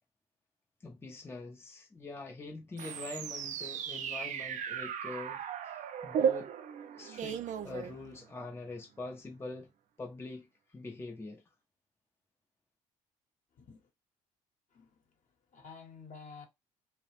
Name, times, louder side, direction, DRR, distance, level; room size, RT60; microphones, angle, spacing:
voice 1, 0.8-6.5 6.9-9.7 10.0-11.4, left 3 dB, 15° left, 0.5 m, -44 dB
sound 1, 2.8-8.4, right 8 dB, 45° right, 0.4 m, -36 dB
voice 2, 13.5-13.9 14.7-15.0 15.5-16.5, left 5 dB, 50° left, 0.9 m, -51 dB
2.3 x 2.0 x 3.0 m
hypercardioid pair, 50°, 17 cm